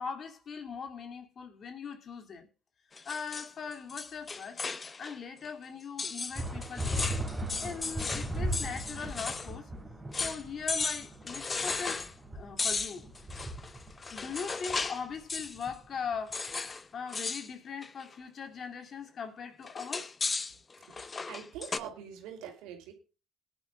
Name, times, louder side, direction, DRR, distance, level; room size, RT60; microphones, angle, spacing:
voice 1, 0.0-2.5 3.0-4.6 5.0-7.2 7.6-9.7 10.2-12.0 12.3-13.1 14.1-16.5 16.9-20.2, left 6 dB, 50° left, 2.6 m, -40 dB
sound 1, 2.9-5.2 5.4-5.5 6.0-9.5 9.8-9.9 10.1-10.4 10.7-12.1 12.6-15.0 15.3-15.7 16.3-16.8 17.1-17.5 17.8-18.1 19.7-21.8, left 4 dB, 30° left, 1.0 m, -35 dB
sound 2, 6.4-16.3, right 1 dB, 15° right, 3.7 m, -38 dB
voice 2, 20.9-22.9, right 8 dB, 85° right, 2.9 m, -44 dB
19.5 x 10.5 x 2.4 m
supercardioid pair, 80°, 0 cm